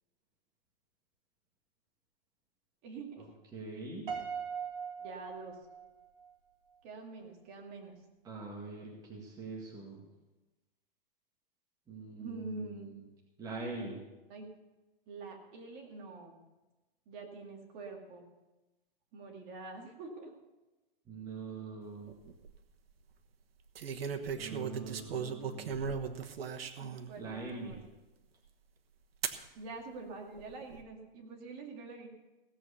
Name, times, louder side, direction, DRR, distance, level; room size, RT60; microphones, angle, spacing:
voice 1, 2.8-3.3 5.0-5.6 6.8-8.0 12.2-12.9 14.3-14.5 15.1-16.4 17.1-18.3 19.1-20.3 26.8-27.8 29.5-32.1, right 3 dB, 30° right, 1 dB, 2.2 m, -45 dB
voice 2, 3.5-4.1 8.2-10.0 11.9-12.7 13.4-14.0 21.1-22.1 24.3-25.8 27.2-27.8, right 3 dB, 10° right, -2 dB, 1.9 m, -43 dB
Piano, 4.1-6.3, right 7 dB, 65° right, 3.8 m, -40 dB
sound 1, 22.1-22.5 23.8-27.1 27.7-27.8 29.2-29.4 30.3-30.8, right 6 dB, 85° right, 1.3 m, -37 dB
17.0 x 7.7 x 6.9 m, 1.1 s
hypercardioid pair, 155°, 29 cm